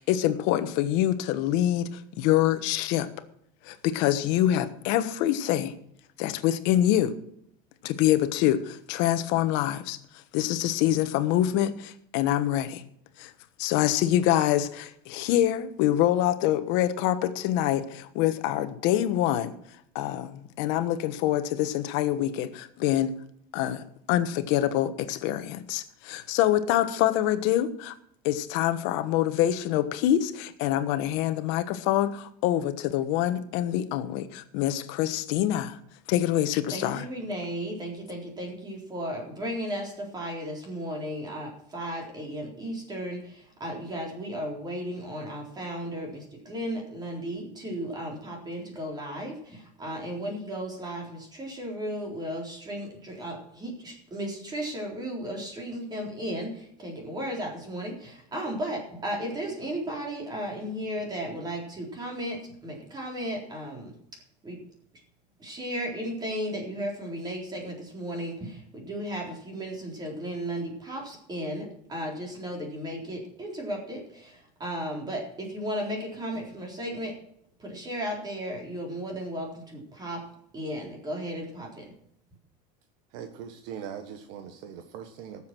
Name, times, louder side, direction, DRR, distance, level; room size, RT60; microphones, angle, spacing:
voice 1, 0.0-3.1 3.6-5.7 6.2-7.2 7.8-10.0 10.3-12.8 13.2-13.3 13.6-19.5 19.9-23.1 23.5-27.9 28.2-35.8 36.1-37.0, left 12 dB, 65° left, 11 dB, 1.3 m, -25 dB
voice 2, 36.7-64.6 65.4-77.2 77.6-81.9, equal, 20° right, 0 dB, 4.0 m, -35 dB
voice 3, 83.1-85.5, right 8 dB, 65° right, 6 dB, 1.4 m, -41 dB
18.0 x 7.4 x 6.1 m, 0.72 s
supercardioid pair, 140°, 20 cm